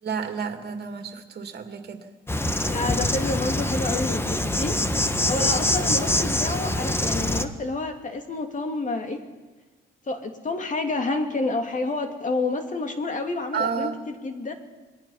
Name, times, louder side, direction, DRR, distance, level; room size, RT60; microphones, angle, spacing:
voice 1, 0.0-2.0 13.5-14.0, right 6 dB, 55° right, 6 dB, 2.6 m, -30 dB
Insect, 2.3-7.4, left 1 dB, 10° left, 1.3 m, -24 dB
voice 2, 2.7-4.7 5.3-9.2 10.1-13.9 14.2-14.5, left 3 dB, 40° left, 5 dB, 2.9 m, -29 dB
26.5 x 20.0 x 5.8 m, 1.3 s
cardioid pair, 90°, 20 cm